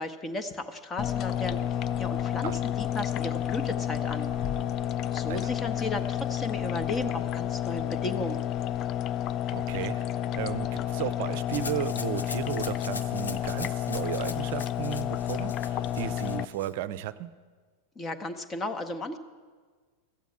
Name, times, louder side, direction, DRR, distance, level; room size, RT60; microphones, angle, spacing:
voice 1, 0.0-1.6 2.0-4.3 5.1-8.4 18.0-19.2, left 2 dB, 20° left, 7 dB, 0.8 m, -34 dB
sound 1, 1.0-16.4, left 11 dB, 35° left, 0.4 m, -30 dB
voice 2, 9.5-10.1 10.3-17.3, right 13 dB, 50° right, 15 dB, 0.5 m, -34 dB
Rattle (instrument), 11.5-16.7, left 4 dB, 75° left, 0.6 m, -42 dB
13.5 x 8.2 x 8.5 m, 1.5 s
figure-of-eight pair, 90°, 0 cm